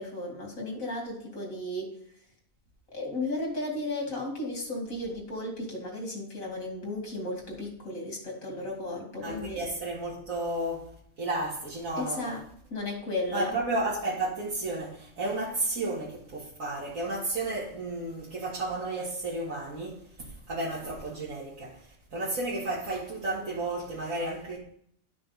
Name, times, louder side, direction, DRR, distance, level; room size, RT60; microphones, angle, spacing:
voice 1, 0.0-1.9 2.9-9.6 12.0-12.4 12.7-13.5, left 2 dB, 90° left, 2.8 m, -34 dB
voice 2, 9.2-10.9 11.2-12.4 13.3-20.0 20.5-21.8 22.1-24.6, right 2 dB, 85° right, 2.3 m, -32 dB
12.0 x 6.0 x 4.0 m
omnidirectional pair, 1.4 m